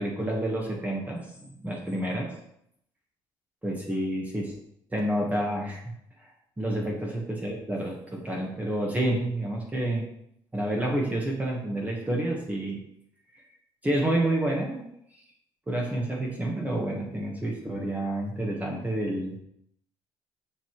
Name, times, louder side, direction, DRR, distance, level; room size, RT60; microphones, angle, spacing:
voice 1, 0.0-2.3 3.6-4.5 4.9-5.9 6.2-6.3 6.6-10.1 10.5-12.8 13.3-13.4 13.8-14.8 15.7-19.4, right 1 dB, 15° right, -2 dB, 1.4 m, -29 dB
7.3 x 5.5 x 3.1 m, 0.75 s
cardioid pair, 95°, 11 cm